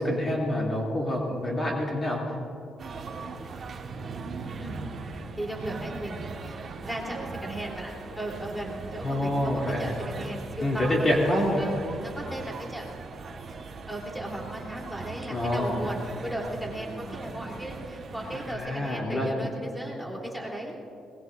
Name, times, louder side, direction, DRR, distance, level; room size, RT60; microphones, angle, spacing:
voice 1, 0.0-2.4 9.0-9.9 10.6-11.6 15.3-15.9 18.5-19.5, left 1 dB, 30° left, -3 dB, 3.0 m, -27 dB
sound 1, 2.8-18.5, right 4 dB, 50° right, 1.6 m, -39 dB
voice 2, 5.4-11.1 11.6-12.9 13.9-20.7, right 1 dB, ahead, -2 dB, 3.5 m, -36 dB
21.5 x 21.0 x 2.7 m, 2.7 s
cardioid pair, 90°, 0 cm